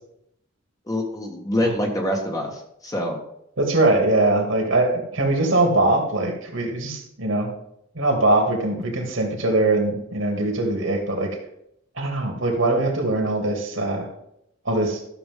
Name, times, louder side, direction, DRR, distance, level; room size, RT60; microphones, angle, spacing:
voice 1, 0.9-3.2, left 1 dB, 20° left, 1 dB, 1.5 m, -25 dB
voice 2, 3.6-7.5 8.0-11.3 12.0-14.1 14.7-15.0, right 2 dB, 75° right, 1 dB, 2.4 m, -22 dB
12.5 x 7.0 x 3.8 m, 0.76 s
head